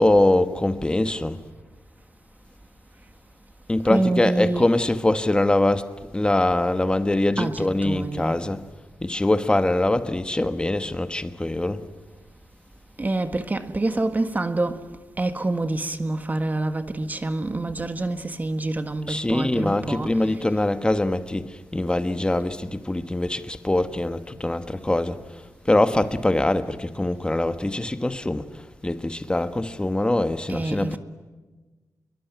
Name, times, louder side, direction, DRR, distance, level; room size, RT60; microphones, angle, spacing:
voice 1, 0.0-1.4 3.7-5.9 6.1-8.6 9.0-11.8 19.1-25.2 25.7-28.5 28.8-31.0, left 1 dB, 15° left, 1.3 m, -23 dB
voice 2, 3.8-4.7 7.4-8.4 13.0-14.9 15.2-20.2 30.5-31.0, right 2 dB, 25° right, 1.6 m, -27 dB
28.0 x 22.5 x 9.4 m
wide cardioid pair, 105°, 6 cm